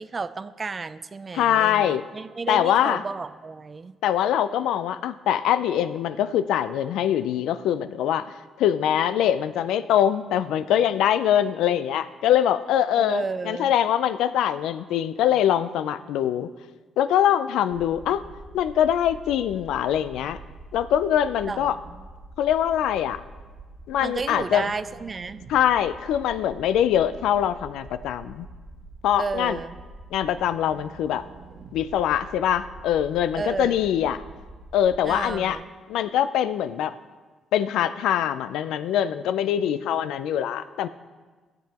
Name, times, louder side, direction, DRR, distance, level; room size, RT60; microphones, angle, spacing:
voice 1, 0.0-4.0 13.0-13.7 21.5-22.0 24.0-25.4 29.2-29.8 33.3-33.9 35.0-35.7, right 4 dB, 35° right, 14 dB, 0.4 m, -32 dB
voice 2, 1.3-2.0 2.5-3.0 4.0-16.5 17.0-18.2 18.5-20.4 20.7-21.8 22.4-23.2 23.9-24.6 25.5-28.5 29.0-29.6 30.1-31.2 31.7-34.2 34.7-35.6 35.9-37.0 37.5-40.9, left 10 dB, 85° left, 12 dB, 0.4 m, -23 dB
sound 1, 17.7-35.5, right 2 dB, 65° right, 1.1 m, -45 dB
16.5 x 7.6 x 2.9 m, 1.3 s
cardioid pair, 90°, 0 cm